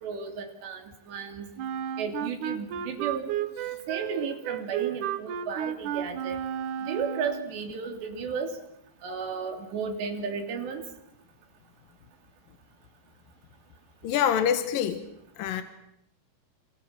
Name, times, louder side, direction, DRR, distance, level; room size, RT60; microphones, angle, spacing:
voice 1, 0.0-1.5 2.0-3.3 3.9-6.4 6.8-8.6 9.0-10.8, right 6 dB, 85° right, 5 dB, 5.2 m, -33 dB
Wind instrument woodwind instrument, 1.6-7.6, right 9 dB, 65° right, 2.2 m, -33 dB
voice 2, 14.0-15.0 15.4-15.6, left 9 dB, 65° left, 10 dB, 2.7 m, -25 dB
27.5 x 26.5 x 7.4 m, 0.76 s
omnidirectional pair, 4.9 m